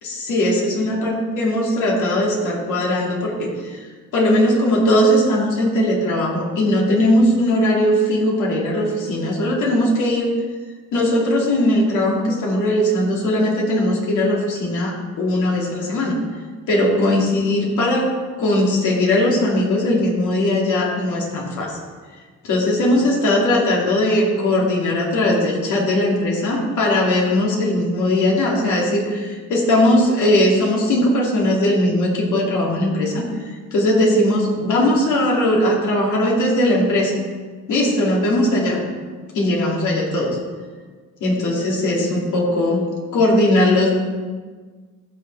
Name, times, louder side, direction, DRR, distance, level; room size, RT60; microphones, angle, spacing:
voice 1, 0.0-3.8 4.1-10.3 10.9-16.2 16.7-18.1 18.4-21.8 22.4-33.3 33.7-37.2 37.7-38.8 39.3-40.4 41.2-42.8 43.1-43.9, left 1 dB, 75° left, -2 dB, 2.6 m, -19 dB
15.5 x 6.5 x 3.4 m, 1.5 s
cardioid pair, 90°, 30 cm